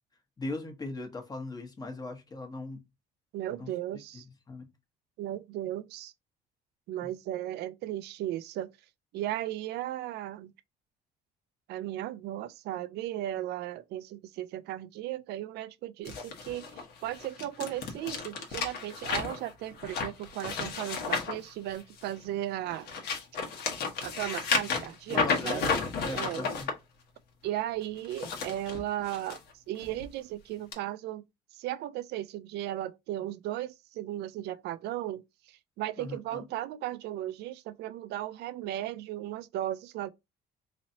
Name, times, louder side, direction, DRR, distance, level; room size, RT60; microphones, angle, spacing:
voice 1, 0.4-2.8 3.6-3.7 4.2-4.7 7.0-7.1 25.1-25.7 25.9-26.7 36.0-36.5, left 2 dB, 20° left, 1.0 m, -39 dB
voice 2, 3.3-4.3 5.2-6.1 6.9-8.7 9.1-10.5 11.7-22.9 24.0-25.7 26.1-26.5 27.4-29.4 29.7-31.2 31.5-40.1, right 13 dB, 75° right, 0.4 m, -36 dB
sound 1, 16.0-22.2 22.6-26.7 28.0-29.4 29.8-30.1 30.7-30.8, left 5 dB, 70° left, 1.1 m, -33 dB
4.0 x 3.0 x 2.7 m
cardioid pair, 110°, 17 cm